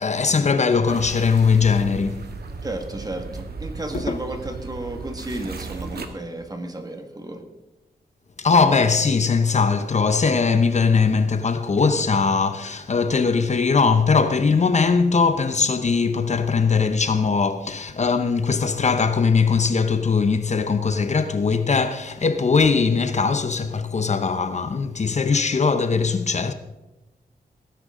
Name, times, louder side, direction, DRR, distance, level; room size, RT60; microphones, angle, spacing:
voice 1, 0.0-2.2 3.9-4.2 8.4-26.5, left 5 dB, 45° left, 0.8 m, -20 dB
sound 1, 0.9-6.1, right 4 dB, 75° right, 1.5 m, -36 dB
voice 2, 2.6-7.4, right 2 dB, 25° right, 1.8 m, -33 dB
18.5 x 10.5 x 3.8 m
wide cardioid pair, 110°, 16 cm